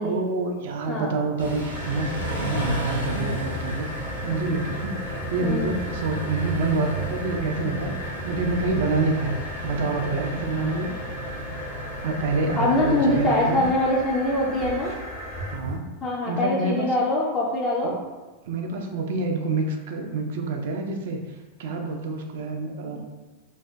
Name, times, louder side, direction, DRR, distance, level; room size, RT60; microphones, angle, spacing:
voice 1, 0.0-10.9 12.0-13.7 15.4-15.8 16.2-16.9 17.8-18.0 18.4-23.0, right 3 dB, 55° right, 3 dB, 0.3 m, -27 dB
Car / Idling / Accelerating revving vroom, 1.4-13.7, equal, 85° left, 0.7 m, -35 dB
sound 1, 1.7-15.8, equal, 45° left, 0.8 m, -34 dB
voice 2, 5.4-5.7 12.6-14.9 16.0-17.9 22.8-23.0, left 1 dB, 25° left, -4 dB, 0.3 m, -23 dB
2.6 x 2.1 x 2.2 m, 1.2 s
figure-of-eight pair, 90°, 0 cm